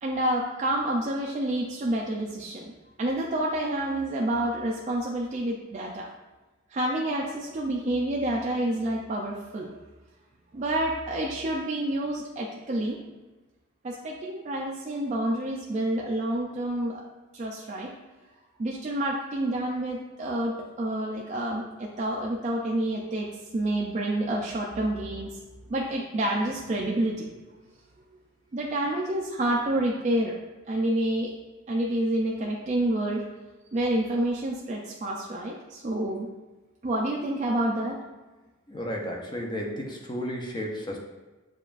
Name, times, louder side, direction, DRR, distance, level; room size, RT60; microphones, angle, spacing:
voice 1, 0.0-2.7 3.0-6.1 6.7-9.7 10.5-13.0 13.8-17.0 17.3-17.9 18.6-23.3 23.5-25.3 25.7-27.3 28.5-30.3 30.7-31.3 31.7-33.2 33.7-36.3 36.8-38.0, right 1 dB, 35° right, -2 dB, 0.3 m, -28 dB
voice 2, 38.7-41.0, equal, 20° left, -1 dB, 0.5 m, -33 dB
6.9 x 2.4 x 2.4 m, 1.2 s
head